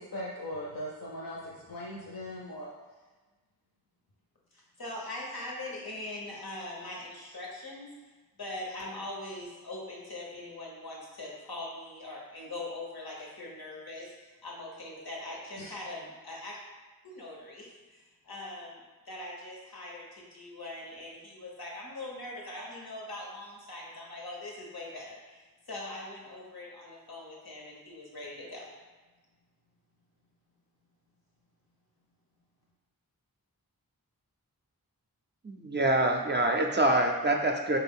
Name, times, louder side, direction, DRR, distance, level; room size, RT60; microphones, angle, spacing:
voice 1, 0.0-2.7 15.6-15.7, left 1 dB, 65° left, -5 dB, 0.7 m, -39 dB
voice 2, 4.5-7.9 8.4-16.6 17.0-28.7, left 2 dB, 85° left, -3 dB, 1.0 m, -42 dB
voice 3, 35.4-37.8, right 1 dB, 30° right, 2 dB, 0.4 m, -25 dB
4.2 x 2.3 x 3.6 m, 1.3 s
wide cardioid pair, 45°, 36 cm